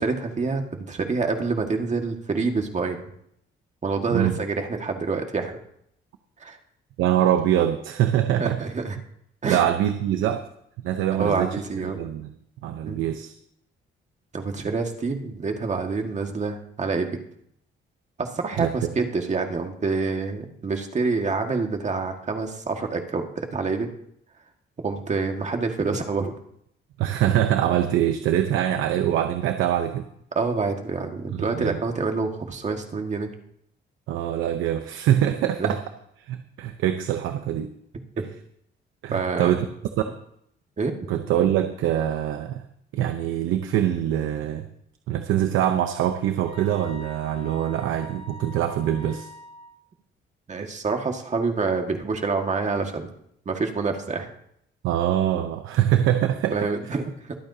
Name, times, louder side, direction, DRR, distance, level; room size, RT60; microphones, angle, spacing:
voice 1, 0.0-3.0 3.8-5.6 6.4-6.6 8.4-9.0 9.4-9.6 11.2-12.0 12.9-13.0 14.3-17.1 18.2-23.9 24.8-26.3 30.4-33.3 35.6-35.8 38.2-38.3 39.1-39.6 40.8-41.0 50.5-53.1 53.5-54.3 56.5-57.4, right 4 dB, 35° right, 4 dB, 1.9 m, -27 dB
voice 2, 7.0-8.6 9.4-10.4 10.8-11.5 11.8-12.3 12.6-13.3 18.6-18.7 27.0-30.1 31.3-31.8 34.1-35.8 36.3-37.7 39.0-39.7 41.1-42.6 42.9-44.7 45.1-49.3 54.8-56.7, right 11 dB, 85° right, 7 dB, 0.8 m, -24 dB
sound 1, 46.4-49.7, left 1 dB, 35° left, 4.1 m, -44 dB
23.5 x 8.9 x 2.8 m, 0.72 s
cardioid pair, 90°, 20 cm